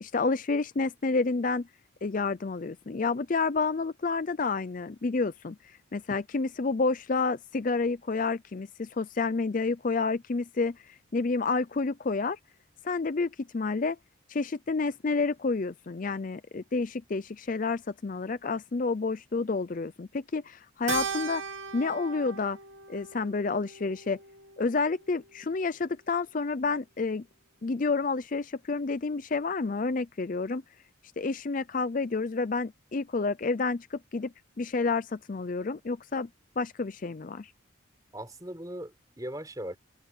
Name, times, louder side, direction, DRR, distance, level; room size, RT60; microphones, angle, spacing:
voice 1, 0.0-1.7 2.0-12.4 12.8-14.0 14.3-21.4 21.7-22.6 22.9-24.2 24.6-27.2 27.6-30.6 31.2-36.3 36.6-37.5, left 4 dB, 40° left, 0.5 m, -29 dB
Keyboard (musical), 20.9-25.5, right 6 dB, 70° right, 1.7 m, -39 dB
voice 2, 38.1-39.8, right 1 dB, 15° right, 5.2 m, -39 dB
head